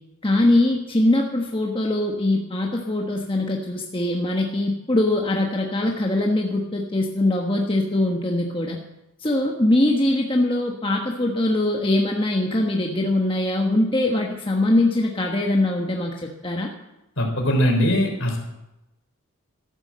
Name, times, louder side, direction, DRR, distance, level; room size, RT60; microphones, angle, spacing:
voice 1, 0.2-8.8 9.2-16.1 16.4-16.7, left 1 dB, 25° left, 0 dB, 1.2 m, -22 dB
voice 2, 17.2-18.4, equal, 60° left, 2 dB, 3.8 m, -21 dB
13.5 x 11.0 x 7.5 m, 0.94 s
head